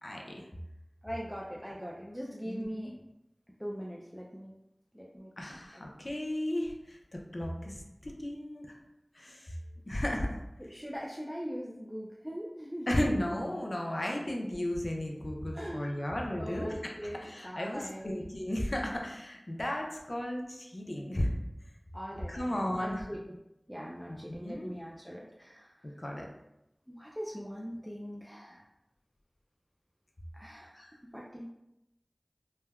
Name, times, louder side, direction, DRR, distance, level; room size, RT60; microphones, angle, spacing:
voice 1, 0.0-0.4 2.4-2.9 5.4-8.8 9.1-9.6 9.9-10.4 12.9-21.3 22.3-23.0 24.1-24.7 25.8-26.3 30.7-30.9, left 1 dB, 60° left, 0 dB, 0.5 m, -35 dB
voice 2, 1.0-2.9 3.6-4.5 4.9-5.6 10.6-12.9 15.5-16.0 16.4-18.2 21.9-23.2 23.7-25.7 26.9-28.6 30.3-30.7 31.1-31.5, equal, 5° right, -4 dB, 0.3 m, -41 dB
3.2 x 2.1 x 2.2 m, 0.89 s
wide cardioid pair, 45°, 0 cm